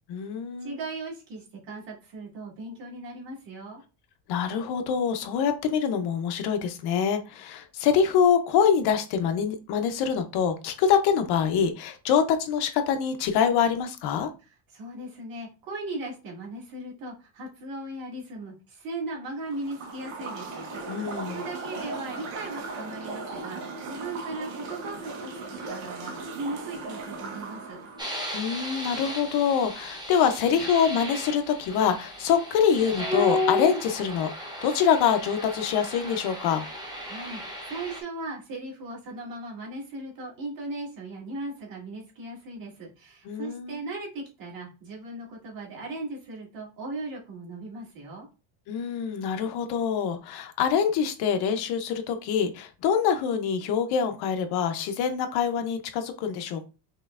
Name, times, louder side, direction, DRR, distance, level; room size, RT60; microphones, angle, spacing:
voice 1, 0.1-0.8 4.3-14.3 20.9-21.4 28.3-36.7 43.3-43.8 48.7-56.7, left 7 dB, 55° left, 7 dB, 0.7 m, -25 dB
voice 2, 0.6-3.8 14.7-25.4 25.7-27.8 37.0-48.3, right 2 dB, 45° right, -2 dB, 1.9 m, -38 dB
sound 1, 19.4-28.1, right 3 dB, 75° right, 1.3 m, -37 dB
sound 2, 28.0-38.0, left 1 dB, 10° right, 0.5 m, -33 dB
5.5 x 3.1 x 2.4 m, 0.31 s
cardioid pair, 165°, 48 cm